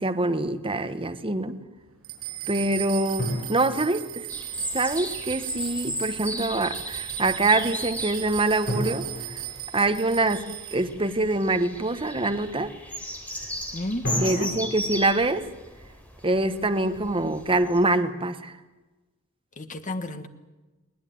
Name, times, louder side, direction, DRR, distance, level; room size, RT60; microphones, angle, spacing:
voice 1, 0.0-1.6 2.5-4.3 4.7-9.1 9.7-12.7 14.2-15.5 16.2-18.5, right 2 dB, 25° right, 1.3 m, -25 dB
sound 1, 2.0-10.8, right 13 dB, 85° right, 7.1 m, -37 dB
sound 2, 3.2-4.8 8.7-10.6 14.0-16.3, equal, 55° left, 7.6 m, -34 dB
sound 3, 4.3-17.8, left 1 dB, 5° left, 4.2 m, -37 dB
voice 2, 13.7-14.5 19.6-20.3, left 1 dB, 40° left, 1.7 m, -32 dB
21.0 x 19.5 x 9.4 m
head